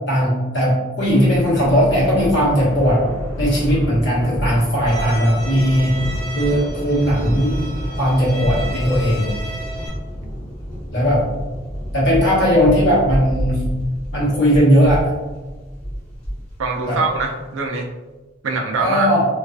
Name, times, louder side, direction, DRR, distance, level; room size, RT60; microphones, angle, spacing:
voice 1, 0.1-3.0 3.4-6.0 6.3-7.6 8.0-9.3 10.9-11.2 11.9-13.6 14.1-15.1 16.9-17.0 18.8-19.2, equal, 65° left, -7 dB, 1.1 m, -17 dB
Thunder, 1.0-17.6, equal, 35° left, 1.0 m, -29 dB
Bowed string instrument, 4.9-9.9, right 1 dB, 20° right, 0.9 m, -34 dB
voice 2, 16.6-17.9 18.4-19.1, right 3 dB, 80° right, 2 dB, 0.4 m, -23 dB
2.3 x 2.3 x 2.3 m, 1.2 s
head